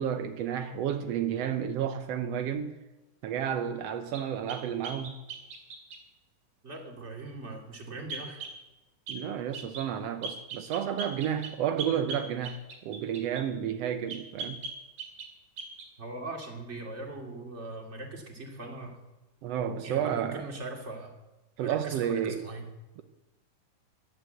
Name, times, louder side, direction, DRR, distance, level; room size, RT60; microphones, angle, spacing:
voice 1, 0.0-2.7 3.2-5.1 9.1-14.6 19.4-20.5 21.6-22.4, right 9 dB, 85° right, 8 dB, 1.4 m, -31 dB
sound 1, 4.1-6.0 8.1-8.6 9.1-9.2 9.5-9.9 10.2-13.5 14.1-15.3 15.6-15.9, right 3 dB, 65° right, 3.5 m, -40 dB
voice 2, 6.6-8.4 16.0-18.9 19.8-21.1 21.6-22.6, right 2 dB, 20° right, 1 dB, 2.3 m, -40 dB
12.5 x 11.0 x 7.8 m, 1.0 s
omnidirectional pair, 3.8 m